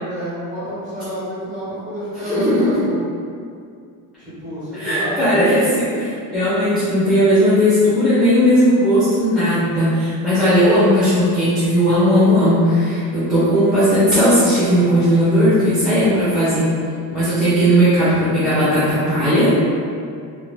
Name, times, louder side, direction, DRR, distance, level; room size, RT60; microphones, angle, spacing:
voice 1, 0.0-3.0 4.2-5.4, equal, 20° right, -11 dB, 1.2 m, -29 dB
voice 2, 2.2-2.7 4.7-16.7 17.1-19.5, equal, ahead, -14 dB, 0.7 m, -16 dB
2.7 x 2.1 x 3.1 m, 2.3 s
cardioid pair, 145°, 39 cm